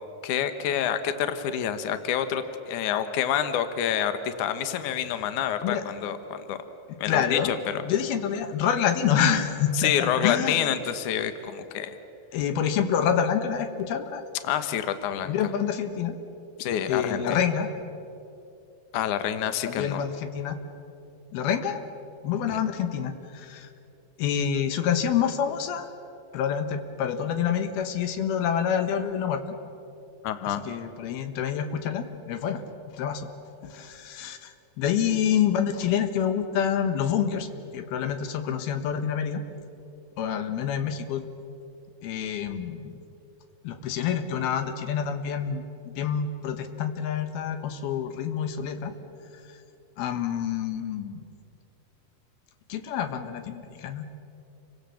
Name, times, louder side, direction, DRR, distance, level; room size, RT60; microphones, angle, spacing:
voice 1, 0.2-6.6 7.0-7.8 9.7-12.0 14.4-15.3 16.6-17.4 18.9-20.0 22.5-22.6 30.2-30.6, left 9 dB, 65° left, 10 dB, 2.4 m, -28 dB
voice 2, 7.1-7.5 7.8-10.7 12.3-14.2 15.2-16.1 16.9-17.7 19.6-20.6 21.3-21.8 22.2-23.7 24.2-25.9 26.3-29.4 30.5-32.6 32.9-33.3 33.6-37.5 37.7-39.4 40.2-41.2 42.0-43.0 43.6-45.6 46.0-48.9 50.0-51.3 52.7-54.1, left 8 dB, 90° left, 8 dB, 3.3 m, -27 dB
29.0 x 24.5 x 7.1 m, 2.7 s
omnidirectional pair, 4.3 m